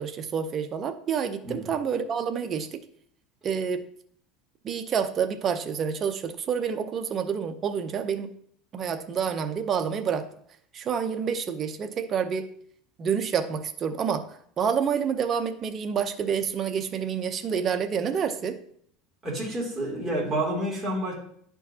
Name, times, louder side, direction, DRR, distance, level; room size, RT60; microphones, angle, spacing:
voice 1, 0.0-2.8 3.4-3.8 4.6-8.3 8.7-10.2 10.7-12.5 13.0-14.2 14.6-18.6, right 7 dB, 35° right, 8 dB, 0.6 m, -28 dB
voice 2, 19.2-21.1, right 1 dB, 15° right, -4 dB, 2.6 m, -29 dB
11.0 x 4.6 x 2.8 m, 0.65 s
supercardioid pair, 135°, 0 cm